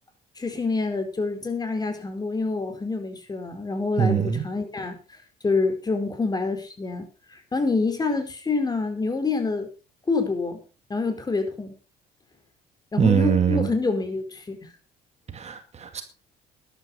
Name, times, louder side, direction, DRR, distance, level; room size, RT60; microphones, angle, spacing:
voice 1, 0.4-5.2 5.4-9.7 10.1-10.6 10.9-11.7 12.9-14.7, left 3 dB, 25° left, 7 dB, 4.5 m, -27 dB
voice 2, 4.0-4.4 13.0-13.7 15.3-16.0, right 7 dB, 40° right, 7 dB, 2.3 m, -22 dB
13.0 x 11.5 x 5.4 m, 0.34 s
cardioid pair, 110°, 17 cm